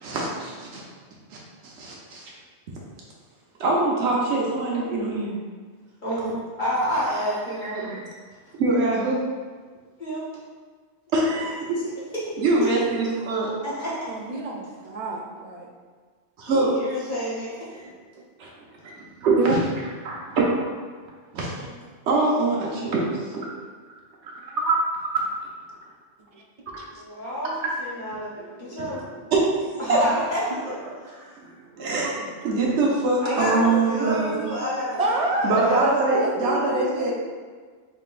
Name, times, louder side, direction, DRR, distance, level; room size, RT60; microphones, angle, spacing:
voice 1, 0.0-0.8 1.6-2.3 3.6-5.4 8.6-9.3 11.1-11.8 12.4-13.5 16.4-16.7 18.4-18.5 19.0-19.6 20.0-20.4 21.3-21.6 22.1-23.0 23.3-23.5 24.2-24.8 28.8-29.0 29.3-30.0 31.8-34.5 35.4-37.1, right 3 dB, 75° right, -4 dB, 1.0 m, -23 dB
voice 2, 6.0-8.0 8.5-8.6 10.0-10.2 12.1-12.2 12.6-12.9 13.6-14.0 16.5-17.5 21.5-21.7 26.9-29.0 29.8-30.8 31.8-32.0 33.2-35.0 35.4-35.8, equal, 45° left, -8 dB, 1.2 m, -29 dB
voice 3, 14.1-15.7 17.7-17.9 19.4-19.6 26.3-26.4 26.8-26.9 28.3-29.2 35.0-37.1, right 2 dB, 45° right, 0 dB, 0.5 m, -28 dB
4.2 x 3.9 x 2.4 m, 1.5 s
omnidirectional pair, 1.2 m